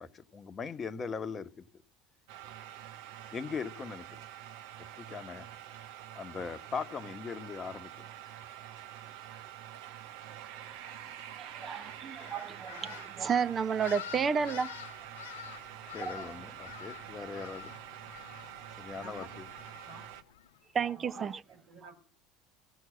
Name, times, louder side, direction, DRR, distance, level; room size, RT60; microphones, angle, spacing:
voice 1, 0.0-1.7 3.3-4.2 5.0-5.5 6.1-8.1 15.9-17.7 18.8-19.5, left 5 dB, 35° left, 1.1 m, -40 dB
sound 1, 2.3-20.2, right 11 dB, 70° right, 1.2 m, -47 dB
voice 2, 11.4-14.7 16.0-16.3 20.7-21.4, right 6 dB, 35° right, 0.8 m, -32 dB
sound 2, 11.5-20.6, left 12 dB, 80° left, 0.5 m, -49 dB
voice 3, 18.9-19.4 19.8-20.1 20.9-21.9, equal, 90° right, 6.0 m, -51 dB
15.5 x 6.3 x 8.7 m
hypercardioid pair, 75°, 0 cm